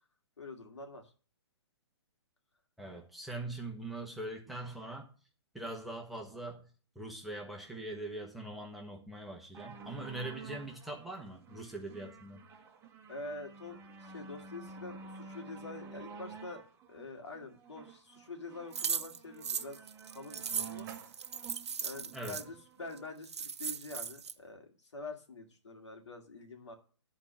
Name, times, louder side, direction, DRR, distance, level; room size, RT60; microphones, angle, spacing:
voice 1, 0.4-1.1 13.1-16.6 16.9-19.8 20.1-20.9 21.8-26.7, left 3 dB, 85° left, 2.5 m, -46 dB
voice 2, 2.8-5.1 5.5-6.7 6.9-12.4 22.1-22.4, right 2 dB, ahead, 1.5 m, -42 dB
sound 1, 9.5-23.1 23.9-24.0, right 5 dB, 15° right, 1.5 m, -50 dB
sound 2, 18.7-22.4 23.0-23.1 23.2-24.3, right 6 dB, 75° right, 0.9 m, -37 dB
sound 3, 20.1-22.1, right 8 dB, 40° right, 1.8 m, -56 dB
10.5 x 4.5 x 7.1 m
hypercardioid pair, 140°, 14 cm